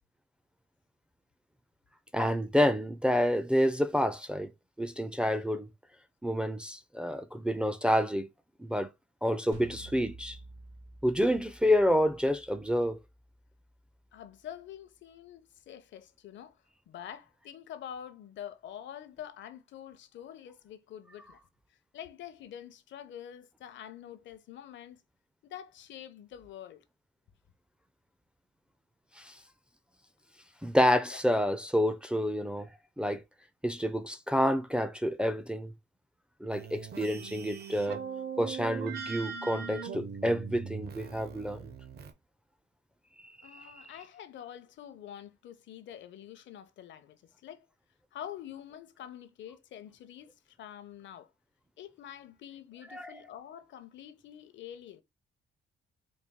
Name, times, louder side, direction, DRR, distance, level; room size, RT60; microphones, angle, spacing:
voice 1, 2.1-4.5 4.8-5.7 6.2-8.3 8.6-8.9 9.2-10.4 11.0-13.0 29.2-29.4 30.6-32.7 33.0-33.2 33.6-35.7 36.4-38.0 38.4-41.7 43.2-43.8 52.9-53.2, equal, 5° right, 0.4 m, -28 dB
sound 1, 9.5-14.6, right 2 dB, 85° right, 2.1 m, -52 dB
voice 2, 14.1-16.6 16.9-21.4 21.9-25.0 25.4-26.8 43.4-47.7 48.1-51.3 51.8-55.0, left 10 dB, 70° left, 0.6 m, -46 dB
sound 2, 36.5-42.1, right 6 dB, 55° right, 0.8 m, -40 dB
4.3 x 2.2 x 3.5 m
cardioid pair, 90°, 20 cm